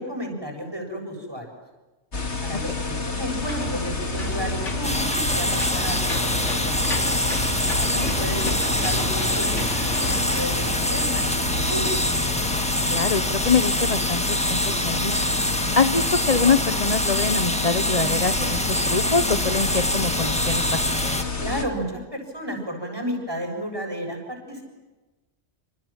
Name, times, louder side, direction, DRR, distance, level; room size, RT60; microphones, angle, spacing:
voice 1, 0.0-1.6 2.4-7.1 7.8-11.9 21.4-24.6, equal, 20° right, 3 dB, 7.5 m, -32 dB
sound 1, 2.1-21.6, left 4 dB, 70° left, 3.0 m, -29 dB
Engine / Mechanisms, 3.3-12.2, equal, 85° left, 4.5 m, -33 dB
sound 2, 4.8-21.2, left 1 dB, 5° left, 1.7 m, -25 dB
voice 2, 7.8-8.6 12.9-15.1 15.7-20.8, left 5 dB, 35° left, 9 dB, 1.1 m, -24 dB
28.5 x 27.5 x 7.5 m, 1.1 s
omnidirectional pair, 1.2 m